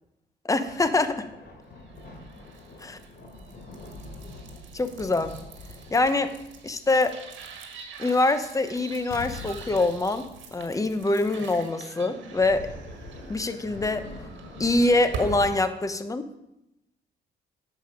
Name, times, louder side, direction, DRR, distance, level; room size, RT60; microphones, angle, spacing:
voice 1, 0.4-1.3 2.8-3.0 4.7-5.3 5.9-6.4 6.6-7.2 8.0-12.8 13.3-14.1 14.6-16.2, left 2 dB, 15° left, 10 dB, 0.8 m, -24 dB
sound 1, 0.7-8.3 12.2-15.5, left 2 dB, 55° left, 2.8 m, -44 dB
sound 2, 1.9-15.6, right 5 dB, 70° right, 1.7 m, -43 dB
Explosion, 9.1-11.7 12.1-12.2, left 6 dB, 85° left, 0.9 m, -43 dB
10.0 x 7.2 x 5.2 m, 0.88 s
cardioid pair, 90°, 20 cm